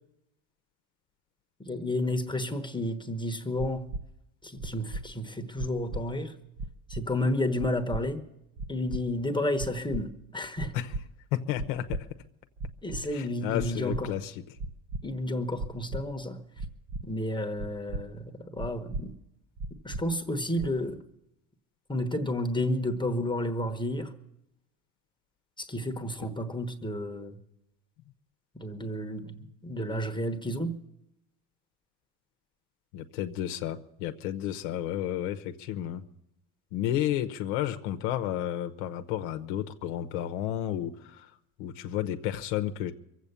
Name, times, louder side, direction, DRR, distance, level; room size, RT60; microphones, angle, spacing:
voice 1, 1.6-3.9 4.4-6.4 6.9-8.2 8.7-10.7 12.8-14.1 15.0-16.7 17.0-19.1 19.8-21.0 21.9-24.1 25.6-27.4 28.5-30.8, left 1 dB, 10° left, 4 dB, 1.1 m, -31 dB
sound 1, 3.6-4.0 4.6-5.0 5.6-6.0 6.6-7.0 7.6-8.0 8.6-9.0 9.6-10.0 10.6-11.0 11.6-12.0 12.6-13.0 13.6-14.0 14.6-15.0 15.6-16.0 16.6-17.0 17.6-18.0 18.6-19.0 19.6-20.0 20.6-20.9, right 2 dB, 45° right, 0.9 m, -35 dB
voice 2, 11.3-12.1 13.1-14.3 32.9-36.0 36.7-41.3 41.6-42.9, left 12 dB, 80° left, 6 dB, 0.9 m, -32 dB
23.0 x 8.1 x 6.9 m, 0.85 s
supercardioid pair, 105°, 43 cm